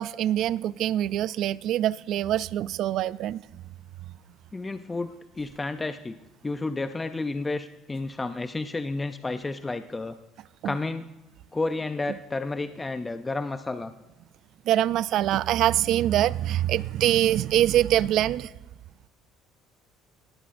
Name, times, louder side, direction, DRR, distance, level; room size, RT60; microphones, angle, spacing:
voice 1, 0.0-3.6 10.6-10.8 14.7-18.5, right 12 dB, 65° right, 0.3 m, -24 dB
voice 2, 4.5-6.2 6.4-10.2 10.6-11.1 11.5-13.9, left 3 dB, 20° left, 0.5 m, -31 dB
18.5 x 12.0 x 2.6 m
supercardioid pair, 95°, 0 cm